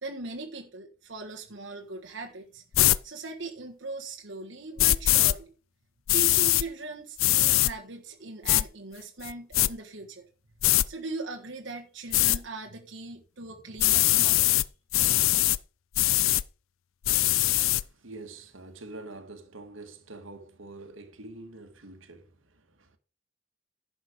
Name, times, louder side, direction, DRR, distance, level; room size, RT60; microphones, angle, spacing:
voice 1, 0.0-2.6 3.0-5.5 6.1-10.3 10.9-14.5, right 3 dB, 65° right, 1.4 m, -39 dB
sound 1, 2.7-3.0 4.8-5.3 6.1-6.6 7.2-7.7 8.5-8.6 9.2-9.7 10.6-10.9 12.1-12.4 13.8-14.7 14.9-15.6 15.9-16.4 17.0-17.8, left 16 dB, 85° left, 0.5 m, -22 dB
voice 2, 17.3-23.0, right 2 dB, 80° right, 1.7 m, -46 dB
11.0 x 6.1 x 5.0 m
head